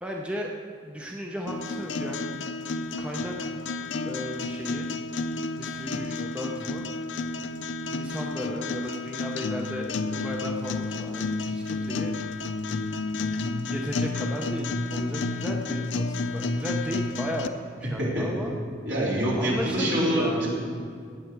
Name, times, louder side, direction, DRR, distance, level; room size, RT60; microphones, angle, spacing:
voice 1, 0.0-2.4 3.0-3.5 4.0-4.9 5.6-6.9 7.9-12.1 13.5-18.6 19.4-20.4, equal, 5° right, -1 dB, 0.6 m, -35 dB
sound 1, 1.5-17.5, left 3 dB, 65° left, 0.5 m, -31 dB
voice 2, 18.9-20.5, equal, 60° right, -6 dB, 3.7 m, -25 dB
17.5 x 7.6 x 4.6 m, 2.2 s
head